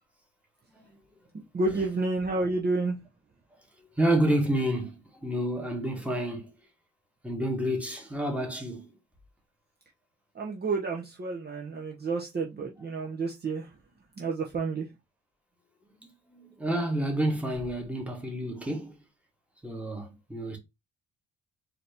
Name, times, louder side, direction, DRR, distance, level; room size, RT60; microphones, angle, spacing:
voice 1, 1.3-3.0 10.3-13.7 14.2-14.9, right 3 dB, 35° right, 0.8 m, -30 dB
voice 2, 4.0-4.9 5.2-6.5 7.2-8.8 16.3-19.0 19.6-20.6, right 1 dB, 5° right, 1.4 m, -29 dB
4.1 x 2.8 x 3.3 m
cardioid pair, 90°, 30 cm